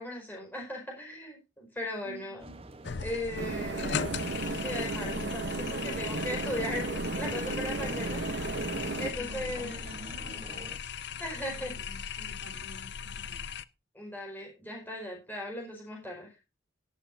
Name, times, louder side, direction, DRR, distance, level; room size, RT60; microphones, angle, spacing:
voice 1, 0.0-2.4 3.0-8.5 9.0-9.8 11.2-11.7 13.9-16.4, left 1 dB, 10° left, -1 dB, 4.9 m, -38 dB
voice 2, 2.0-2.6 9.1-10.8 11.4-13.5, equal, 75° right, -2 dB, 4.9 m, -49 dB
sound 1, 2.4-10.8, right 2 dB, 30° right, 0.9 m, -48 dB
sound 2, 2.8-13.6, left 7 dB, 55° left, 0.5 m, -38 dB
sound 3, 3.4-9.1, right 3 dB, 55° right, 0.7 m, -34 dB
18.5 x 8.2 x 2.6 m, 0.27 s
head